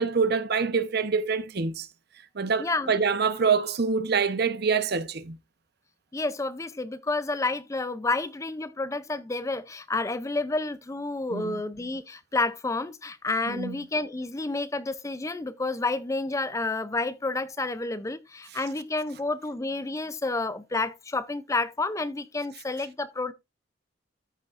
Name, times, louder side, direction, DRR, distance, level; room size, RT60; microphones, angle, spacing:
voice 1, 0.0-1.9 2.4-5.4 11.3-11.6 13.5-13.8, right 5 dB, 55° right, 0.9 m, -26 dB
voice 2, 2.6-3.0 6.1-23.3, left 3 dB, 15° left, 0.4 m, -30 dB
13.5 x 6.5 x 2.5 m
head